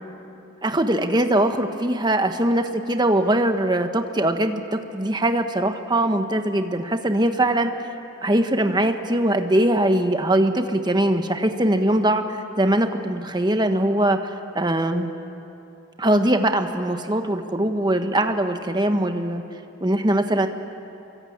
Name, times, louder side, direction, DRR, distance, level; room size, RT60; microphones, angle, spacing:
voice 1, 0.6-7.7 8.2-12.2 12.6-14.3 14.5-15.1 16.0-19.4 19.8-20.5, right 1 dB, 20° right, 6 dB, 1.3 m, -21 dB
28.5 x 23.5 x 8.8 m, 2.8 s
head